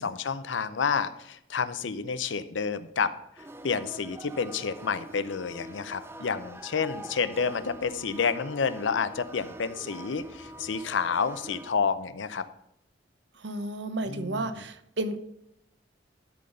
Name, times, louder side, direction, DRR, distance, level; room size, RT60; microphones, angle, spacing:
voice 1, 0.0-3.1 3.6-12.4 14.1-14.4, left 5 dB, 90° left, 13 dB, 0.6 m, -29 dB
sound 1, 3.4-11.7, right 1 dB, 15° right, 0.5 m, -44 dB
voice 2, 13.4-15.2, right 2 dB, 70° right, 10 dB, 0.8 m, -32 dB
12.0 x 4.0 x 6.7 m, 0.78 s
head